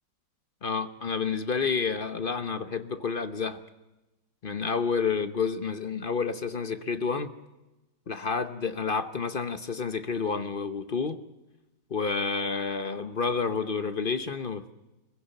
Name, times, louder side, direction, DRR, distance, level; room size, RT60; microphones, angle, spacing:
voice 1, 0.6-3.6 4.4-7.3 8.1-11.2 11.9-14.7, left 5 dB, 45° left, 11 dB, 0.7 m, -29 dB
24.5 x 16.0 x 8.9 m, 1.1 s
omnidirectional pair, 2.0 m